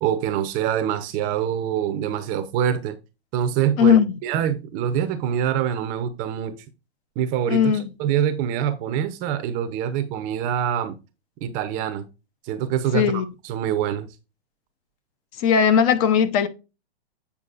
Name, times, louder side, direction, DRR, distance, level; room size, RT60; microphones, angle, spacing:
voice 1, 0.0-3.0 3.3-6.5 7.2-7.7 8.0-11.0 11.4-12.1 12.4-14.1, right 9 dB, 25° right, 0.7 m, -25 dB
voice 2, 7.5-7.9 12.9-13.3 15.4-16.5, left 8 dB, 35° left, 0.8 m, -18 dB
8.3 x 5.1 x 2.5 m
hypercardioid pair, 145°, 32 cm